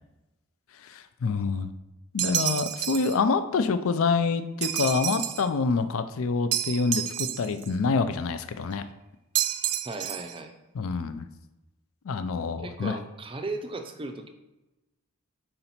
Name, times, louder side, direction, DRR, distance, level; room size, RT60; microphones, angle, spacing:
voice 1, 0.8-1.7 2.1-8.8 10.7-11.3 12.1-13.0, left 4 dB, 70° left, 11 dB, 0.4 m, -26 dB
sound 1, 2.2-3.2 4.6-5.5 6.5-7.7 9.3-10.4, right 11 dB, 85° right, 0.4 m, -29 dB
voice 2, 9.8-10.5 12.6-14.3, right 3 dB, 25° right, 6 dB, 0.4 m, -36 dB
5.6 x 3.9 x 4.4 m, 1.0 s
head